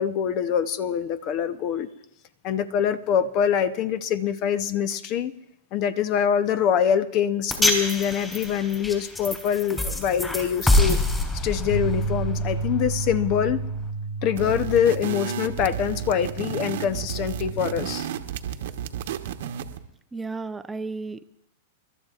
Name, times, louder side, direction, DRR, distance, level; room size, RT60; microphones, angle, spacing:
voice 1, 0.0-1.9 2.4-5.3 5.7-11.0 11.4-13.6 14.2-18.1, left 8 dB, 45° left, 14 dB, 0.8 m, -24 dB
sound 1, 7.5-13.9, left 1 dB, 15° left, 3.6 m, -26 dB
sound 2, 11.7-17.9, right 3 dB, 80° left, 5.4 m, -32 dB
sound 3, 14.3-19.8, right 9 dB, 65° right, 1.0 m, -32 dB
voice 2, 20.1-21.3, right 3 dB, 15° right, 10 dB, 0.6 m, -33 dB
29.0 x 12.5 x 2.5 m, 0.77 s
hypercardioid pair, 105°, 0 cm